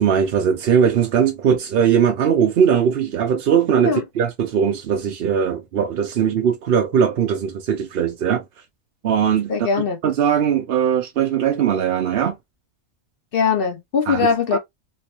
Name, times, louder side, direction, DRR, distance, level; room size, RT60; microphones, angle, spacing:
voice 1, 0.0-8.4 9.0-12.4 14.1-14.6, right 8 dB, 60° right, 0.7 m, -20 dB
voice 2, 9.5-10.0 13.3-14.6, left 6 dB, 55° left, 0.8 m, -20 dB
3.0 x 3.0 x 2.9 m
omnidirectional pair, 1.3 m